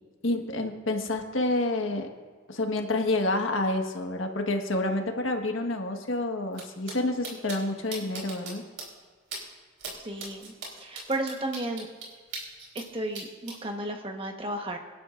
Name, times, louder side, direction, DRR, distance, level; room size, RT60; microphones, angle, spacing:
voice 1, 0.2-2.1 2.5-8.6, left 2 dB, 85° left, 4 dB, 1.5 m, -28 dB
sound 1, 6.5-6.6 6.9-7.0 7.2-7.6 7.9-8.5 8.8-8.9 9.3-9.4 9.8-9.9 10.2-12.8 13.1-13.5, right 4 dB, 75° right, 4.0 m, -38 dB
voice 2, 10.0-10.5 10.8-11.9 12.7-14.8, right 1 dB, 30° right, 3 dB, 1.3 m, -33 dB
25.0 x 11.5 x 2.6 m, 1.5 s
head